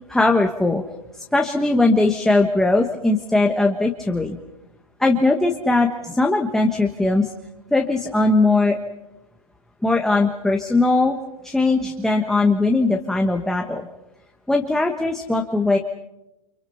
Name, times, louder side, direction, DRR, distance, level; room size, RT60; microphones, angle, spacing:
voice 1, 0.1-0.8 1.1-4.4 5.0-7.3 7.7-8.8 9.8-11.2 11.4-13.9 14.5-15.8, left 2 dB, ahead, 2 dB, 1.3 m, -19 dB
29.5 x 26.0 x 5.7 m, 0.92 s
hypercardioid pair, 150°, 18 cm